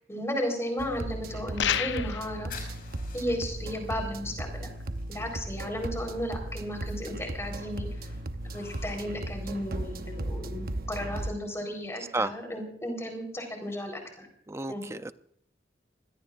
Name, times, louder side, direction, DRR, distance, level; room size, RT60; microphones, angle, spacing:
voice 1, 0.1-2.5 3.1-4.7 5.1-7.9 8.5-14.3 14.7-14.9, equal, 15° left, 3 dB, 4.1 m, -34 dB
sound 1, 0.8-11.3, right 1 dB, 55° right, 0.9 m, -36 dB
sound 2, 1.6-2.3, left 9 dB, 75° left, 0.6 m, -28 dB
sound 3, 2.0-10.7, left 5 dB, 50° left, 5.5 m, -53 dB
voice 2, 14.5-15.1, right 2 dB, 15° right, 12 dB, 0.5 m, -31 dB
25.5 x 17.0 x 2.5 m, 0.67 s
head